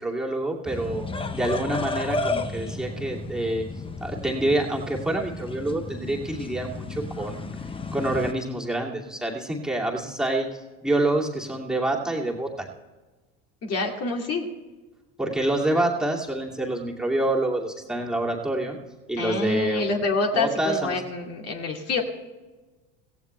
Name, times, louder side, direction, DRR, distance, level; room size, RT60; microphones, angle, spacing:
voice 1, 0.0-3.7 4.0-7.5 7.9-12.7 15.2-18.8 19.1-19.8 20.3-21.0, right 1 dB, ahead, -3 dB, 2.5 m, -27 dB
sound 1, 0.7-8.3, left 3 dB, 15° left, 0.9 m, -33 dB
voice 2, 13.6-14.5 19.2-22.0, left 3 dB, 40° left, 1 dB, 2.4 m, -27 dB
16.5 x 16.0 x 3.3 m, 1.2 s
supercardioid pair, 100°, 37 cm